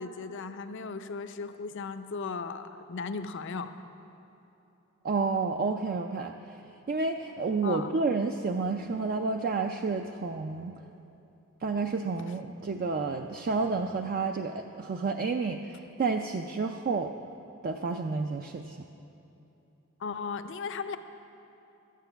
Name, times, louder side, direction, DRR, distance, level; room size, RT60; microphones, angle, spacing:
voice 1, 0.0-3.7 7.6-7.9 20.0-21.0, left 4 dB, 60° left, 9 dB, 0.5 m, -36 dB
voice 2, 5.0-6.3 6.9-10.8 11.6-17.1 17.6-18.8, right 4 dB, 45° right, 5 dB, 0.4 m, -30 dB
13.0 x 9.2 x 5.7 m, 2.9 s
head